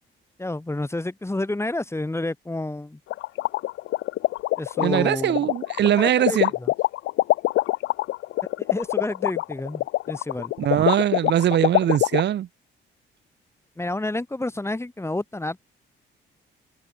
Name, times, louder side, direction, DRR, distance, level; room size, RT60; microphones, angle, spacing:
voice 1, 0.4-3.0 4.6-5.5 5.9-6.7 8.7-10.5 13.8-15.7, left 2 dB, 15° left, 6.1 m, -29 dB
sound 1, 3.1-12.2, left 17 dB, 80° left, 0.4 m, -23 dB
voice 2, 4.8-6.5 10.6-12.5, right 11 dB, 60° right, 1.0 m, -21 dB
cardioid pair, 90°, 20 cm